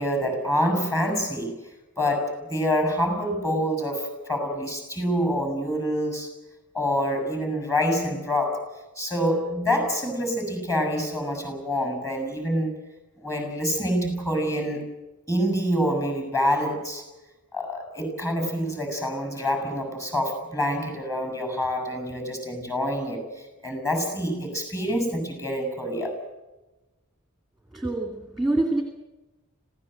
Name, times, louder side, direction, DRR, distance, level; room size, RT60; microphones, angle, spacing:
voice 1, 0.0-1.6 2.0-6.3 6.7-8.7 9.0-12.7 13.2-14.8 15.3-17.0 17.5-26.2, equal, 15° left, 7 dB, 7.0 m, -26 dB
voice 2, 27.7-28.8, right 2 dB, ahead, 3 dB, 2.5 m, -25 dB
26.5 x 17.0 x 7.9 m, 1.1 s
head